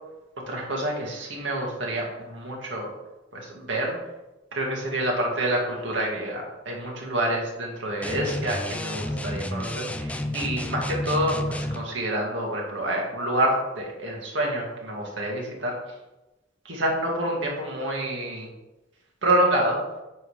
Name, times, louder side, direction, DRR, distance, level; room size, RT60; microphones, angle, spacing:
voice 1, 0.5-2.9 3.3-4.0 4.5-15.8 16.7-18.5 19.2-19.8, right 1 dB, 90° right, -1 dB, 2.1 m, -27 dB
sound 1, 8.0-11.9, left 1 dB, 5° left, 0.4 m, -31 dB
9.1 x 3.8 x 5.0 m, 1.0 s
head